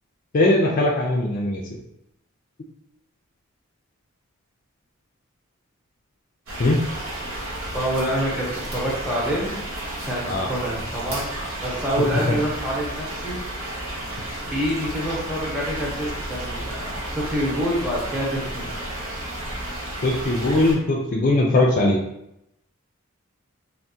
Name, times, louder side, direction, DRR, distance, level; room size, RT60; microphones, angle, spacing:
voice 1, 0.3-1.6 6.6-6.8 10.3-10.5 12.1-12.4 20.0-22.0, left 2 dB, 40° left, -2 dB, 0.3 m, -20 dB
sound 1, 6.5-20.7, right 1 dB, 75° right, 1.0 m, -32 dB
voice 2, 7.2-9.6 10.0-11.4 11.6-13.4 14.4-16.8 17.1-19.0, equal, 5° right, -5 dB, 0.8 m, -27 dB
3.4 x 2.1 x 2.7 m, 0.79 s
head